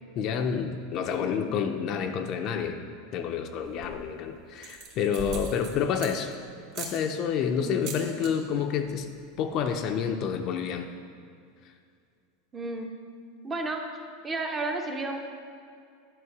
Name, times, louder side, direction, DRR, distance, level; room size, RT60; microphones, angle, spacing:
voice 1, 0.2-2.8 3.1-6.3 6.8-9.1 9.4-10.9, left 7 dB, 35° left, 6 dB, 0.5 m, -29 dB
sound 1, 3.6-4.1 4.5-6.3 6.7-7.0 7.7-8.3 8.6-8.9 9.2-9.3 9.5-9.9, right 4 dB, 40° right, 1.5 m, -40 dB
voice 2, 12.5-13.0 13.4-14.0 14.2-15.2, right 2 dB, 15° right, 4 dB, 0.6 m, -32 dB
11.0 x 5.7 x 4.7 m, 2.3 s
supercardioid pair, 170°, 0 cm